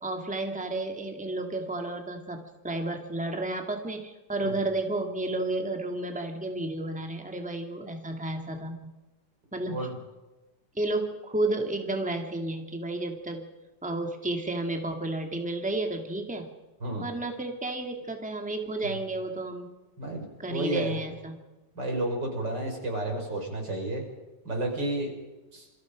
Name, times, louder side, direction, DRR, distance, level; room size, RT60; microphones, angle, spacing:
voice 1, 0.0-8.8 9.5-9.9 10.8-13.5 13.8-16.5 17.0-19.7 20.4-21.3, right 2 dB, 5° right, 3 dB, 2.3 m, -32 dB
voice 2, 9.7-10.0 16.8-17.1 20.0-21.0 21.8-24.0 24.4-25.1 25.5-25.7, right 1 dB, 80° right, 2 dB, 6.2 m, -31 dB
27.5 x 25.0 x 5.3 m, 1.1 s
omnidirectional pair, 1.9 m